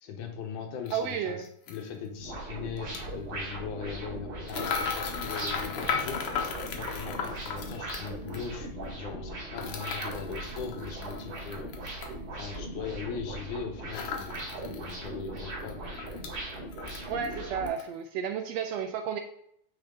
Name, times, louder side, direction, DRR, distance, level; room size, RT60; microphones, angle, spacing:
voice 1, 0.0-6.2 6.5-11.7 12.3-15.9, left 6 dB, 85° left, 3 dB, 2.6 m, -40 dB
sound 1, 0.9-1.0 1.7-1.8 2.8-3.0 4.5-8.4 9.6-12.1 13.9-14.9 15.3-15.4 15.7-16.3 16.7-17.3 17.7-17.8, left 6 dB, 65° left, 1.6 m, -35 dB
voice 2, 0.9-1.5 17.1-19.2, right 7 dB, 80° right, 6 dB, 1.5 m, -32 dB
sound 2, 2.2-17.7, right 1 dB, 45° right, 3.2 m, -39 dB
9.0 x 4.0 x 3.8 m, 0.72 s
omnidirectional pair, 3.4 m